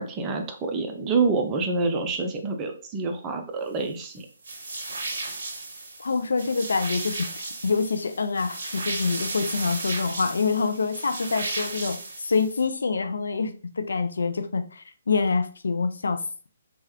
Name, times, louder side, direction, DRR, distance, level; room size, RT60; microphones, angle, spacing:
voice 1, 0.0-4.3, right 4 dB, 20° right, 0.5 m, -27 dB
sound 1, 4.4-12.6, right 2 dB, 60° right, 0.8 m, -34 dB
voice 2, 6.0-16.2, left 4 dB, 70° left, 0.3 m, -26 dB
3.1 x 2.3 x 2.8 m
figure-of-eight pair, 135°, 0 cm